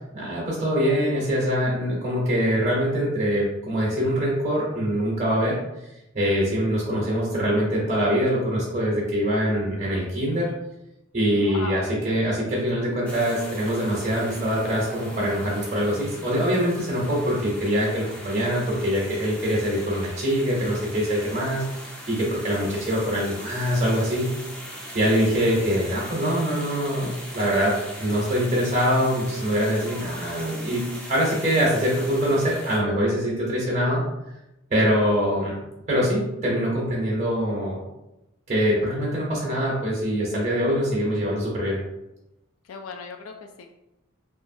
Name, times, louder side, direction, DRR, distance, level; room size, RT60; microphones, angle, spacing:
voice 1, 0.1-5.6 6.1-10.5 11.1-24.3 24.9-34.0 34.7-35.5 35.9-37.8 38.5-41.8, equal, 35° right, -4 dB, 0.6 m, -24 dB
voice 2, 11.4-11.8 42.6-43.7, left 5 dB, 80° left, 4 dB, 0.3 m, -37 dB
sound 1, 13.0-32.8, equal, 5° left, 0.4 m, -40 dB
2.9 x 2.4 x 2.6 m, 0.91 s
head